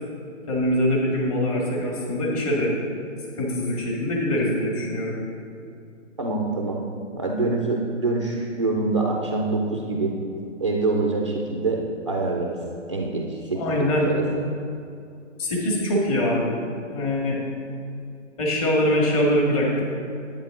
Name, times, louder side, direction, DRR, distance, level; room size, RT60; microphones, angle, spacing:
voice 1, 0.5-2.7 3.4-5.1 13.5-14.1 15.4-16.6 16.9-17.4 18.4-19.8, left 1 dB, 30° left, -3 dB, 1.8 m, -23 dB
voice 2, 6.2-6.8 7.1-10.2 10.6-12.6 12.9-14.3, right 3 dB, 25° right, 0 dB, 0.4 m, -25 dB
10.0 x 8.5 x 3.7 m, 2.6 s
hypercardioid pair, 155°, 38 cm